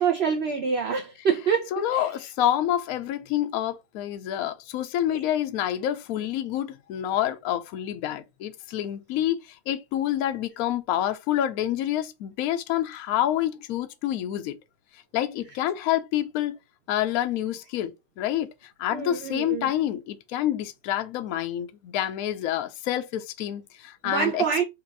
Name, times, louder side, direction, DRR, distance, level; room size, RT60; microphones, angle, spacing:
voice 1, 0.0-2.1 5.1-5.2 18.9-19.7 24.0-24.6, right 6 dB, 60° right, 0.7 m, -26 dB
voice 2, 1.7-14.6 15.1-16.6 16.9-18.5 18.8-24.6, left 12 dB, 70° left, 1.0 m, -28 dB
4.3 x 2.4 x 3.9 m
omnidirectional pair, 1.7 m